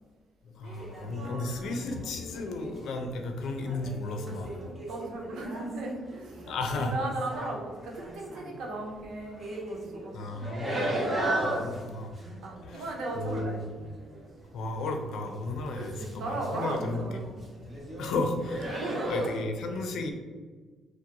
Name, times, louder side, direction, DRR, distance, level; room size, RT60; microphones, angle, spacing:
voice 1, 0.4-4.6 6.5-6.9 10.1-11.0 11.4-12.1 12.6-12.9 13.1-13.7 14.5-17.0 18.0-20.1, left 2 dB, 75° left, 4 dB, 0.6 m, -34 dB
sound 1, 0.7-1.5 1.9-2.9 3.5-7.6 7.8-8.9 9.3-15.1 15.4-17.0 17.2-18.1 18.4-19.4, right 1 dB, 25° right, 1.4 m, -36 dB
voice 2, 1.2-1.8 4.6-10.7 11.6-11.8 12.4-13.6 15.8-17.4 18.7-19.1, right 2 dB, 80° right, 0 dB, 0.8 m, -37 dB
4.6 x 2.2 x 3.8 m, 1.4 s
cardioid pair, 90°, 0 cm